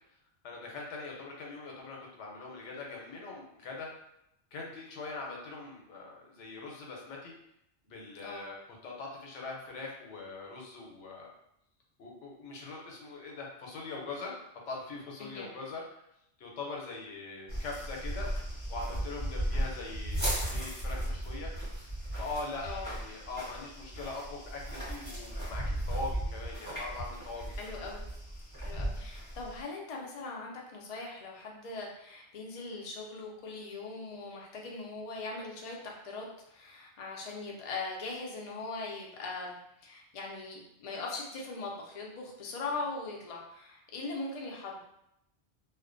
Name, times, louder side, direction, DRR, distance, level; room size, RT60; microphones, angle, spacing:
voice 1, 0.4-3.9 4.5-7.3 7.8-8.6 8.8-11.3 12.0-14.3 14.7-16.0 16.4-18.3 18.7-21.5 22.1-27.8, left 3 dB, 85° left, -1 dB, 1.0 m, -42 dB
voice 2, 15.2-15.5 22.6-22.9 27.6-28.0 28.6-44.8, left 3 dB, 55° left, -1 dB, 0.4 m, -40 dB
sound 1, 17.5-29.6, right 1 dB, 20° right, 0.8 m, -36 dB
2.4 x 2.1 x 2.5 m, 0.78 s
omnidirectional pair, 1.2 m